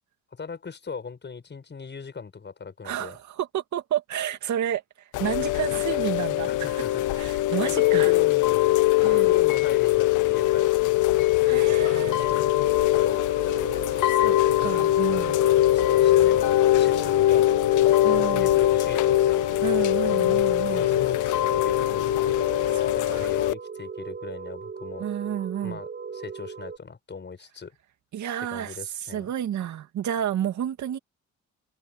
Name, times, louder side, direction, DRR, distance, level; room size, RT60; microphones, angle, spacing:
voice 1, 0.3-3.2 6.5-7.0 7.6-8.8 9.1-11.2 11.8-12.5 12.9-14.4 15.7-19.4 20.7-22.1 22.6-25.1 25.6-27.7 28.4-29.3, left 5 dB, 35° left, 7.3 m, -39 dB
voice 2, 2.8-4.8 5.2-6.5 7.1-8.1 9.0-9.3 11.4-12.3 14.2-14.3 14.6-15.4 18.0-18.5 19.6-20.8 23.1-23.3 25.0-25.8 28.1-31.0, right 10 dB, 70° right, 2.4 m, -30 dB
Chime / Rain, 5.1-23.5, left 15 dB, 85° left, 0.8 m, -22 dB
sound 1, 11.4-26.8, right 5 dB, 35° right, 6.2 m, -38 dB
cardioid pair, 90°, 30 cm